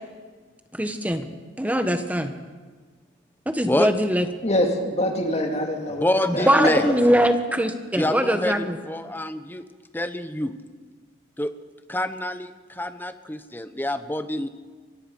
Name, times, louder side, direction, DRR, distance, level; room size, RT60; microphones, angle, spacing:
voice 1, 0.8-1.3 1.6-2.3 3.5-4.3 6.4-8.8, equal, 10° right, 7 dB, 1.3 m, -22 dB
voice 2, 4.4-7.0, left 1 dB, 35° left, 2 dB, 2.5 m, -25 dB
voice 3, 6.0-6.9 7.9-9.6 9.9-10.6 11.4-11.5 11.9-14.5, left 1 dB, 10° left, 10 dB, 1.0 m, -26 dB
24.5 x 22.5 x 5.5 m, 1.4 s
head